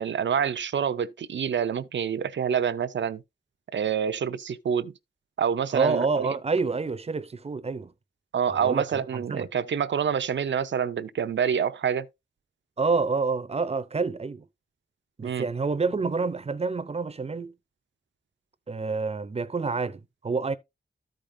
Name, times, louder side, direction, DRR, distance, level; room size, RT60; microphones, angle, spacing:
voice 1, 0.0-3.2 3.7-4.9 5.4-6.4 8.3-12.1 15.2-15.5, right 7 dB, 70° right, 0.6 m, -27 dB
voice 2, 5.7-7.9 8.5-9.5 12.8-14.4 15.2-17.5 18.7-20.5, right 4 dB, 30° right, 0.7 m, -28 dB
13.5 x 5.1 x 2.7 m
wide cardioid pair, 135°, 19 cm